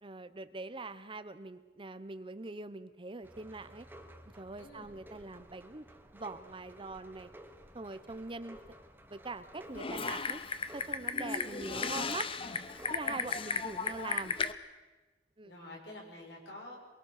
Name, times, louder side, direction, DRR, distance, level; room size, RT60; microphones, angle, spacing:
voice 1, 0.0-3.9 4.4-5.8 6.1-7.3 7.7-8.6 9.1-10.4 10.7-12.3 12.9-14.4 15.4-15.5, right 3 dB, 30° right, 12 dB, 0.8 m, -43 dB
sound 1, 3.2-14.6, equal, 10° right, 1.2 m, -55 dB
voice 2, 4.6-4.9 13.1-13.4 15.4-16.8, left 1 dB, 80° left, 0 dB, 6.2 m, -49 dB
Typing, 9.7-14.5, left 5 dB, 30° left, 0.8 m, -35 dB
23.5 x 23.0 x 6.6 m, 1.2 s
head